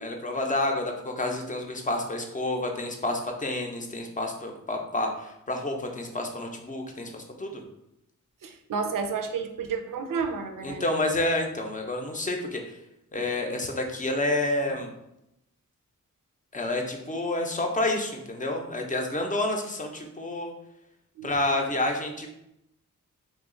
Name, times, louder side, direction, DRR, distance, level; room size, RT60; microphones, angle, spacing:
voice 1, 0.0-7.6 10.6-12.6 13.1-14.9 16.5-20.5 21.2-22.3, left 2 dB, 25° left, 2 dB, 0.5 m, -29 dB
voice 2, 8.4-10.8 21.2-21.6, right 5 dB, 90° right, 6 dB, 0.5 m, -31 dB
3.0 x 2.3 x 3.6 m, 0.84 s
wide cardioid pair, 70°, 32 cm